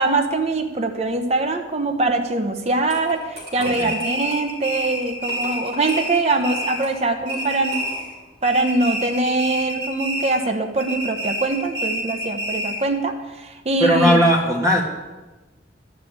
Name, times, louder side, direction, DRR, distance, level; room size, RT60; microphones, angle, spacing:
voice 1, 0.0-7.8 8.4-14.2, right 2 dB, 35° right, 5 dB, 0.9 m, -23 dB
sound 1, 2.7-8.3, equal, 55° right, 4.4 m, -38 dB
voice 2, 3.6-3.9 13.8-14.8, equal, 20° right, 0 dB, 2.1 m, -18 dB
sound 2, 3.6-7.0 7.3-8.2 8.4-10.5 10.8-12.9, right 1 dB, 75° right, 4.5 m, -28 dB
12.0 x 6.3 x 8.6 m, 1.2 s
head